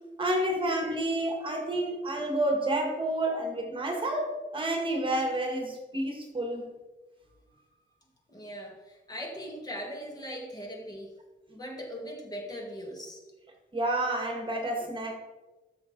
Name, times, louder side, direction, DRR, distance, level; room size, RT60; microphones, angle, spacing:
voice 1, 0.2-6.7 13.7-15.1, right 1 dB, 25° right, 2 dB, 1.6 m, -29 dB
voice 2, 8.3-11.1 11.5-13.2, equal, 20° left, 0 dB, 2.0 m, -40 dB
12.5 x 7.0 x 3.8 m, 1.2 s
wide cardioid pair, 155°, 19 cm